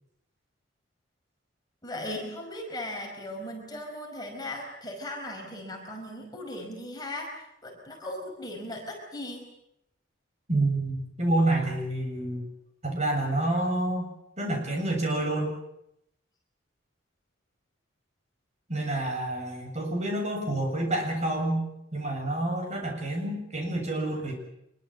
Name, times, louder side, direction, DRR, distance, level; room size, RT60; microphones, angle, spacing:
voice 1, 1.8-7.3 7.6-9.4, left 1 dB, 20° left, 1 dB, 5.1 m, -37 dB
voice 2, 10.5-12.5 12.8-14.1 14.4-15.5 18.7-21.6 21.9-24.3, right 1 dB, 35° right, 2 dB, 7.5 m, -28 dB
25.5 x 23.0 x 7.6 m, 0.79 s
head